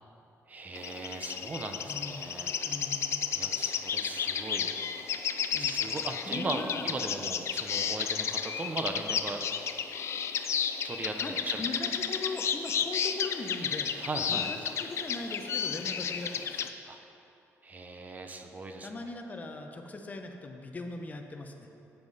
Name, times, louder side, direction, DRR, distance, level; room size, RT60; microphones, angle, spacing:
voice 1, 0.5-2.5 3.3-4.7 5.6-9.4 10.8-11.6 14.0-14.5 16.8-17.0 17.6-18.9, right 2 dB, 30° right, 5 dB, 0.7 m, -38 dB
sound 1, 0.8-16.7, left 7 dB, 55° left, 0.5 m, -32 dB
voice 2, 1.9-2.2 2.6-3.8 5.5-5.7 6.3-6.9 11.2-13.9 14.3-16.7 18.8-21.7, left 2 dB, 30° left, 4 dB, 0.8 m, -40 dB
12.5 x 9.3 x 4.1 m, 2.8 s
cardioid pair, 135°, 6 cm